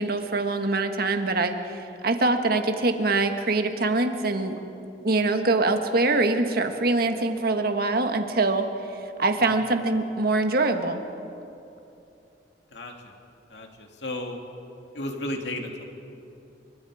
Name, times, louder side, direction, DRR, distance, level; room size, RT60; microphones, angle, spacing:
voice 1, 0.0-4.6 5.0-8.7 9.2-11.0, right 2 dB, 55° right, 6 dB, 1.6 m, -24 dB
voice 2, 12.7-13.2 13.5-14.4 14.9-15.8, left 1 dB, 75° left, 3 dB, 2.6 m, -34 dB
28.5 x 25.0 x 5.0 m, 2.8 s
head